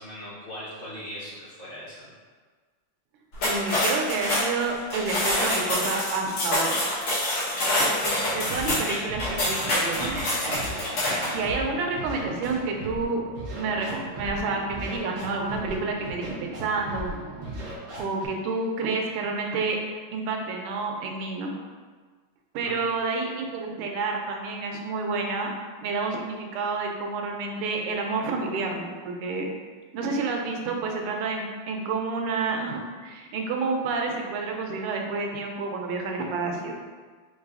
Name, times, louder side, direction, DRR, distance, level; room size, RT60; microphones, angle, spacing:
voice 1, 0.0-2.1 22.6-22.8, equal, 30° left, -12 dB, 1.1 m, -39 dB
sound 1, 3.3-11.4, left 1 dB, 70° left, 1.9 m, -26 dB
voice 2, 3.4-6.8 7.6-11.0 11.3-13.2 13.6-17.2 17.6-17.7 18.0-19.8 20.1-21.6 22.5-25.5 25.8-29.5 29.9-36.7, right 3 dB, 90° right, 1 dB, 1.5 m, -29 dB
sound 2, 8.0-17.8, right 3 dB, 70° right, 1.0 m, -43 dB
Scratching (performance technique), 8.5-8.8 9.1-10.2 10.5-11.6 12.0-13.0 13.4-14.4 14.7-15.7 16.0-16.6 16.9-17.1 17.4-18.3, right 1 dB, 55° right, 1.6 m, -37 dB
4.7 x 3.2 x 2.4 m, 1.5 s
omnidirectional pair, 2.4 m